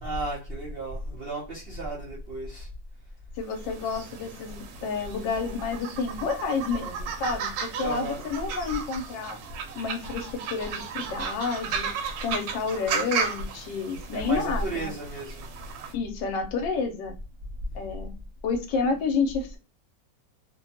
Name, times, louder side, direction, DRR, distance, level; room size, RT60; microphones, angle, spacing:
voice 1, 0.0-2.7 7.8-8.3 14.1-15.5, right 2 dB, 60° right, 0.6 m, -33 dB
voice 2, 3.4-9.4 9.8-11.9 12.2-14.9 15.9-17.1 17.7-18.2 18.4-19.6, left 4 dB, 80° left, 1.3 m, -30 dB
sound 1, 3.5-15.9, right 6 dB, 85° right, 1.3 m, -34 dB
3.0 x 2.2 x 2.7 m
omnidirectional pair, 1.9 m